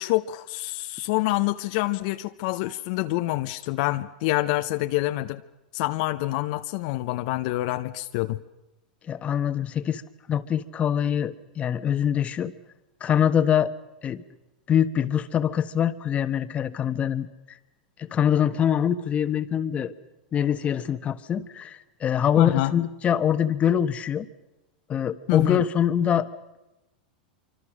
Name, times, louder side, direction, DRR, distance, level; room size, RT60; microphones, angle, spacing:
voice 1, 0.0-5.4 5.7-8.4 22.4-22.7 25.3-25.6, left 18 dB, 60° left, 8 dB, 0.8 m, -26 dB
voice 2, 9.1-10.0 10.3-12.5 13.0-13.7 14.0-14.2 14.7-17.6 18.0-19.9 20.3-24.3 24.9-26.3, left 9 dB, 30° left, 11 dB, 1.2 m, -24 dB
25.5 x 25.0 x 6.3 m, 0.97 s
hypercardioid pair, 110°, 5 cm